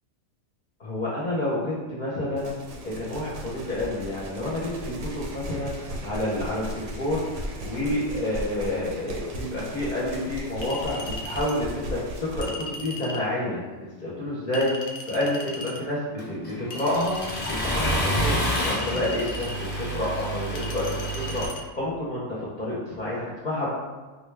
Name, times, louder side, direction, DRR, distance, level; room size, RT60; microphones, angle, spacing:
voice 1, 0.8-2.5 2.8-7.2 7.6-12.0 12.3-22.2 22.6-23.7, left 1 dB, 45° left, -7 dB, 0.7 m, -29 dB
sound 1, 2.4-12.5, right 1 dB, 80° right, 1.0 m, -37 dB
Chink clink, 10.6-11.6 12.4-13.3 14.5-15.8 16.7-17.9 18.6-19.6 20.6-21.6, left 2 dB, 80° left, 0.9 m, -38 dB
Accelerating revving vroom, 16.2-21.5, equal, 10° left, 0.6 m, -29 dB
3.9 x 2.2 x 3.2 m, 1.3 s
omnidirectional pair, 1.2 m